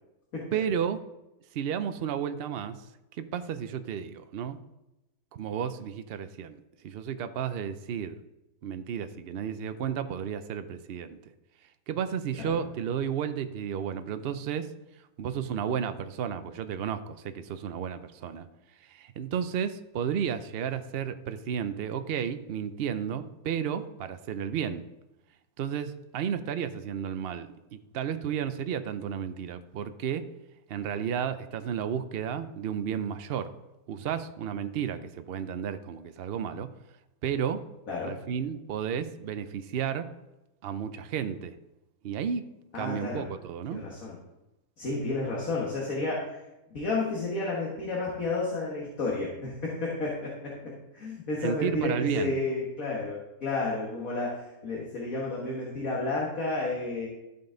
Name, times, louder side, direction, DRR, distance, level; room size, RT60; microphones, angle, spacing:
voice 1, 0.5-1.0 1.5-2.8 3.2-4.6 5.3-8.2 8.6-11.2 11.9-14.7 15.2-18.5 18.8-24.8 25.6-30.3 30.7-33.5 33.9-36.7 37.2-37.6 38.0-40.1 40.6-41.5 42.0-42.4 42.7-43.8 51.4-52.4, right 8 dB, 60° right, 11 dB, 0.7 m, -32 dB
voice 2, 37.9-38.2 42.7-43.2 43.7-44.2 44.8-46.4 46.7-57.1, left 3 dB, 65° left, -4 dB, 2.0 m, -31 dB
13.5 x 5.4 x 3.9 m, 0.94 s
omnidirectional pair, 1.6 m